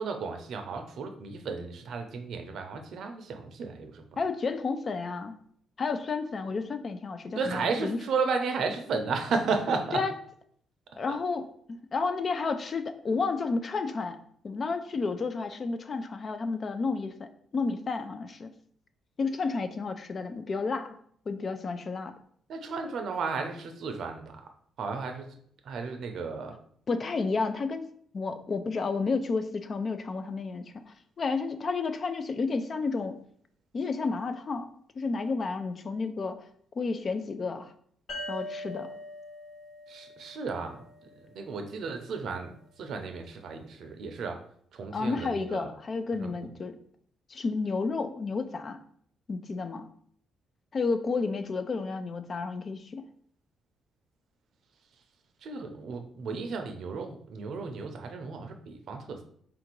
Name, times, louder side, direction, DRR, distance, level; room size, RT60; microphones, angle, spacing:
voice 1, 0.0-4.0 7.3-10.0 11.1-11.2 22.5-24.5 24.8-25.4 25.6-26.6 39.9-44.4 44.7-45.7 46.2-46.5 55.4-59.2, right 4 dB, 70° right, 5 dB, 0.6 m, -34 dB
voice 2, 4.2-5.4 5.8-8.0 9.9-10.1 11.0-14.2 14.4-18.5 19.2-21.0 21.3-22.1 26.9-27.9 28.1-33.2 33.7-34.7 35.0-36.4 36.8-37.7 38.3-38.9 44.9-46.8 47.3-48.8 49.3-49.9 50.7-53.0, left 4 dB, 40° left, 9 dB, 0.4 m, -31 dB
sound 1, 38.1-41.5, left 1 dB, 65° left, 1.3 m, -42 dB
3.6 x 2.5 x 4.5 m, 0.63 s
cardioid pair, 90°, 0 cm